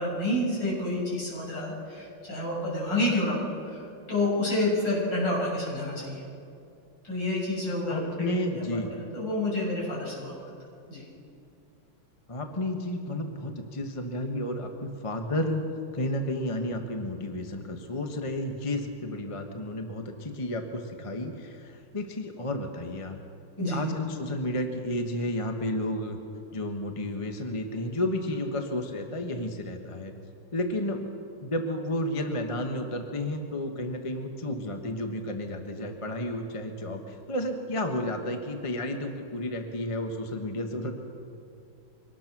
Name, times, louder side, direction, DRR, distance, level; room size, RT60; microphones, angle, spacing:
voice 1, 0.0-3.8 4.1-6.2 7.0-8.6 9.1-10.3 10.9-11.0 23.6-23.8, left 1 dB, 55° left, -5 dB, 7.5 m, -29 dB
voice 2, 7.9-8.9 12.3-15.6 15.9-23.2 23.6-26.2 26.5-30.1 30.5-31.0 31.4-40.9, left 1 dB, 20° left, 4 dB, 1.0 m, -32 dB
24.5 x 19.0 x 6.1 m, 2.5 s
omnidirectional pair, 2.4 m